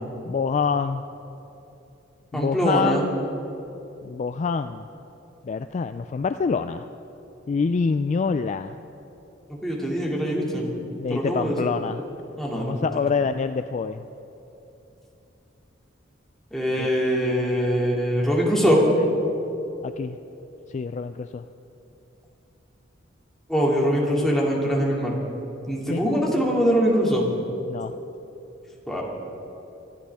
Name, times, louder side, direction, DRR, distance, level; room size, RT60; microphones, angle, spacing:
voice 1, 0.3-1.0 2.3-3.1 4.0-4.9 5.4-6.9 7.5-8.8 11.0-12.0 12.6-14.0 16.8-17.5 19.8-20.2 20.7-21.5 25.9-26.0 27.7-27.9, left 5 dB, 35° left, 10 dB, 0.3 m, -26 dB
voice 2, 2.3-3.0 9.6-10.7 11.1-11.7 12.4-12.9 16.5-18.8 23.5-25.2 25.7-27.3 28.9-29.0, equal, ahead, -4 dB, 2.4 m, -23 dB
24.0 x 13.0 x 3.5 m, 3.0 s
head